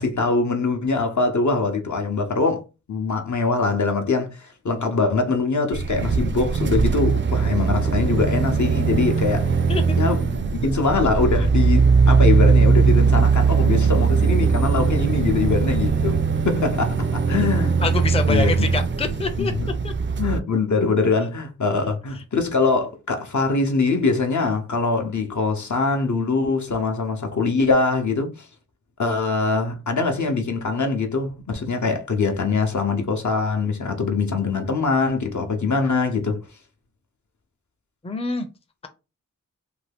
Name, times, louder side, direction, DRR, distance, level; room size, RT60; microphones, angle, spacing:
voice 1, 0.0-2.6 2.9-9.6 10.0-10.2 10.5-17.8 18.3-18.5 19.4-19.7 20.2-28.5 29.0-36.4, left 4 dB, 65° left, 0.7 m, -23 dB
sound 1, 5.7-20.4, right 5 dB, 35° right, 0.4 m, -20 dB
voice 2, 17.8-19.5 19.8-19.9 38.0-38.5, left 3 dB, 20° left, 0.5 m, -26 dB
2.7 x 2.3 x 3.4 m
cardioid pair, 40°, 32 cm